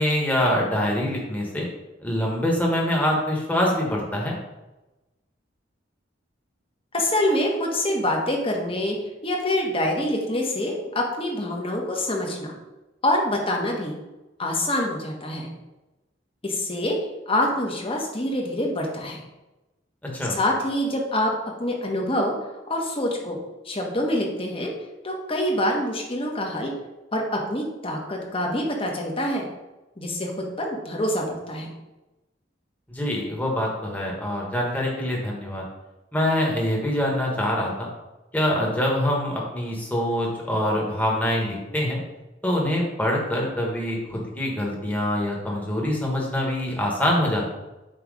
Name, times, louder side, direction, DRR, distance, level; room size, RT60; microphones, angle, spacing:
voice 1, 0.0-1.7 2.0-4.4 20.0-20.4 32.9-35.6 36.1-37.9 38.3-42.0 42.4-47.4, left 1 dB, 10° left, -2 dB, 1.4 m, -24 dB
voice 2, 6.9-9.0 9.2-12.6 13.0-13.9 14.4-15.5 16.4-17.0 17.3-19.2 20.3-21.3 21.6-22.3 22.7-23.4 23.6-24.7 25.0-26.7 27.1-29.5 30.0-31.7, left 1 dB, 30° left, 0 dB, 1.2 m, -25 dB
7.7 x 3.2 x 4.9 m, 1.0 s
head